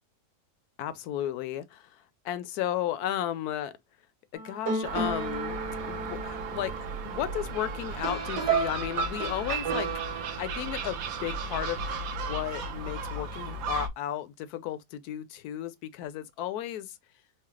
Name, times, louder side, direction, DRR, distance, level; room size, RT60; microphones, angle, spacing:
voice 1, 0.8-3.7 4.3-6.8 7.0-17.0, left 12 dB, 75° left, 1.0 m, -34 dB
sound 1, 4.3-10.4, right 4 dB, 85° right, 1.6 m, -33 dB
Gull seagull, 4.8-13.9, right 4 dB, 65° right, 1.0 m, -36 dB
4.6 x 2.0 x 3.1 m
omnidirectional pair, 1.7 m